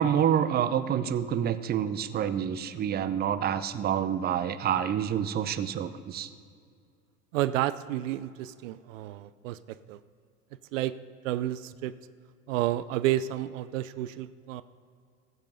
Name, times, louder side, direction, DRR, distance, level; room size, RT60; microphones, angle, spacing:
voice 1, 0.0-6.3, right 9 dB, 25° right, 13 dB, 0.6 m, -27 dB
voice 2, 7.3-10.0 10.7-10.9 11.2-11.9 12.5-14.6, right 13 dB, 65° right, 15 dB, 0.6 m, -30 dB
14.5 x 8.1 x 5.5 m, 2.3 s
hypercardioid pair, 85°, 42 cm